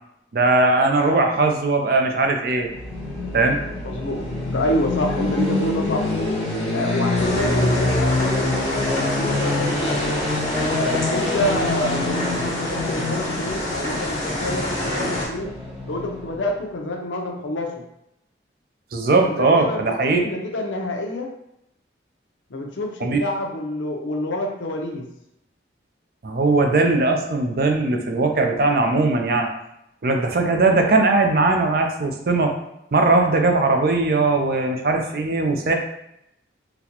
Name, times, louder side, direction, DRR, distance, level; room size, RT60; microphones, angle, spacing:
voice 1, 0.3-2.7 3.3-3.6 18.9-20.2 23.0-23.2 26.2-29.5 30.0-32.6 32.9-35.7, right 3 dB, 50° right, 3 dB, 0.4 m, -19 dB
sound 1, 2.6-16.5, left 2 dB, 5° left, 0.8 m, -26 dB
voice 2, 3.8-4.3 4.5-6.1 6.7-10.2 10.7-15.5 15.9-17.7 19.2-21.3 22.5-25.1, left 1 dB, 80° left, 1 dB, 0.6 m, -27 dB
sound 2, 7.1-15.3, left 1 dB, 35° left, 1.3 m, -27 dB
4.0 x 2.2 x 2.9 m, 0.81 s
head